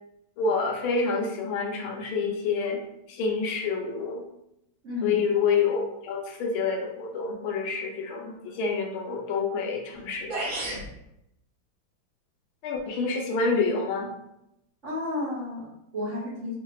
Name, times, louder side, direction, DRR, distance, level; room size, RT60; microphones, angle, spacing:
voice 1, 0.4-2.8 3.1-4.2 5.0-10.5 12.6-14.1, left 4 dB, 75° left, 1 dB, 1.4 m, -27 dB
voice 2, 4.8-5.2 14.8-16.5, left 2 dB, 45° right, -8 dB, 1.1 m, -32 dB
sound 1, 9.9-10.0 10.3-10.9, right 1 dB, 65° right, 2.1 m, -31 dB
5.0 x 2.7 x 3.0 m, 0.83 s
omnidirectional pair, 2.4 m